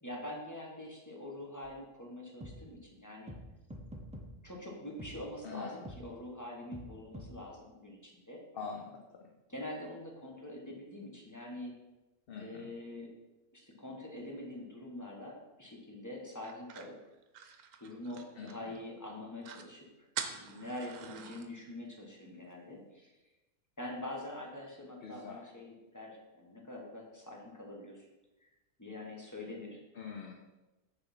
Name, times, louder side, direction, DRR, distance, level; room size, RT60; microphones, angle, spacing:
voice 1, 0.0-3.3 4.4-8.4 9.5-11.7 12.4-13.1 13.5-17.0 17.8-20.1 20.4-23.2 23.8-28.1 28.4-28.5 28.8-29.8, left 1 dB, 15° left, -1 dB, 1.1 m, -45 dB
sound 1, 1.6-1.7 2.4-2.5 3.3-3.4 3.7-4.3 5.0-5.1 5.8-6.0 6.7-6.9 7.1-7.3, equal, 10° right, 0.3 m, -45 dB
voice 2, 5.4-5.8 8.5-9.3 12.3-12.7 18.4-18.8 25.0-25.4 29.9-30.3, left 5 dB, 55° left, 2 dB, 0.7 m, -44 dB
sound 2, 16.4-18.8 19.1-19.2 19.4-19.7 20.1-21.5, right 7 dB, 85° right, 1.1 m, -44 dB
6.5 x 4.1 x 5.7 m, 1.1 s
omnidirectional pair, 1.5 m